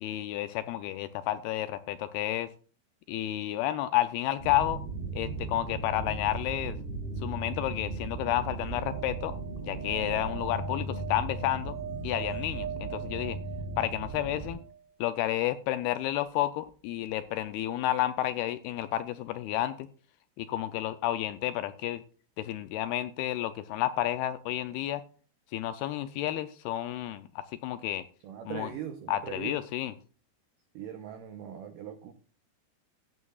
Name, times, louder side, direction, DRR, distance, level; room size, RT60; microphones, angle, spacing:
voice 1, 0.0-2.5 3.1-4.8 5.1-6.8 7.2-11.7 12.0-13.4 13.8-14.6 15.0-19.9 20.4-22.0 22.4-25.0 25.5-28.0 28.5-28.7 29.1-29.9, left 13 dB, 85° left, 12 dB, 2.3 m, -31 dB
sound 1, 4.4-14.5, right 3 dB, 45° right, 6.1 m, -37 dB
sound 2, 8.6-14.8 17.1-17.2 17.4-17.5, right 8 dB, 25° left, 3.4 m, -42 dB
voice 2, 28.2-29.6 30.7-32.1, right 9 dB, 90° right, 7 dB, 1.9 m, -40 dB
14.5 x 9.1 x 2.3 m, 0.39 s
omnidirectional pair, 4.9 m